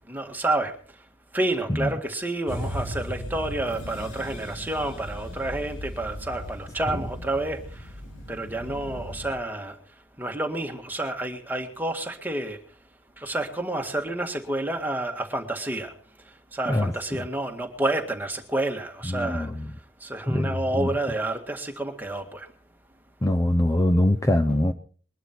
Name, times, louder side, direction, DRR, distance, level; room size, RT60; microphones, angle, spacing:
voice 1, 0.1-0.7 1.3-7.8 8.3-9.8 10.2-12.6 13.2-15.9 16.5-19.5 20.0-22.5, right 2 dB, 10° right, 4 dB, 1.8 m, -29 dB
sound 1, 2.5-9.4, equal, 90° left, 3.5 m, -37 dB
voice 2, 16.7-17.2 19.1-19.6 20.3-20.9 23.2-24.7, left 1 dB, 15° left, 8 dB, 0.6 m, -23 dB
22.0 x 11.5 x 4.4 m, 0.44 s
head